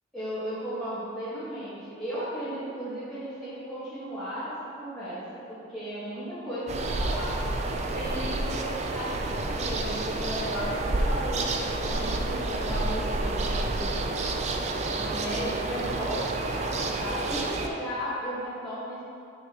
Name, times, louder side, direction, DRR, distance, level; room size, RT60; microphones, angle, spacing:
voice 1, 0.1-7.4 7.9-14.0 15.0-19.0, equal, 5° left, -15 dB, 1.5 m, -35 dB
sound 1, 6.7-17.7, right 2 dB, 35° right, 0.4 m, -29 dB
9.4 x 5.9 x 3.0 m, 2.6 s
head